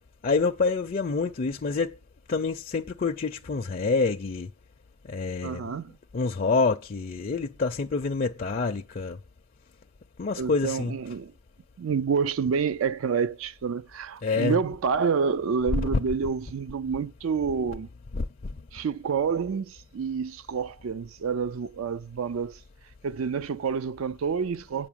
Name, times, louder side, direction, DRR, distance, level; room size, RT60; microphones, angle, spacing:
voice 1, 0.2-2.0 2.3-4.5 5.0-5.7 6.1-9.2 10.2-11.2 14.2-14.6 15.8-16.1 18.1-18.6, left 4 dB, 40° left, 0.4 m, -27 dB
voice 2, 5.4-6.0 10.4-11.3 11.8-17.9 18.7-22.6 23.0-24.9, right 6 dB, 75° right, 0.4 m, -28 dB
8.9 x 5.9 x 7.3 m
head